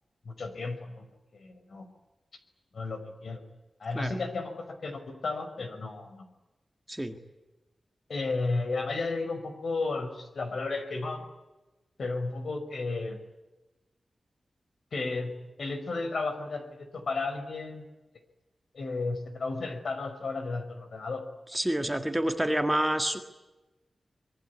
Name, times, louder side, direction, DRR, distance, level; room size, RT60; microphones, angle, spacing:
voice 1, 0.3-1.1 1.3-1.9 2.7-3.4 3.8-6.3 8.1-11.2 12.0-13.2 14.9-15.3 15.6-17.9 18.7-21.2, left 3 dB, 60° left, 8 dB, 5.2 m, -33 dB
voice 2, 21.5-23.2, right 1 dB, 5° right, 6 dB, 1.8 m, -28 dB
25.5 x 23.0 x 9.7 m, 1.1 s
wide cardioid pair, 160°, 0 cm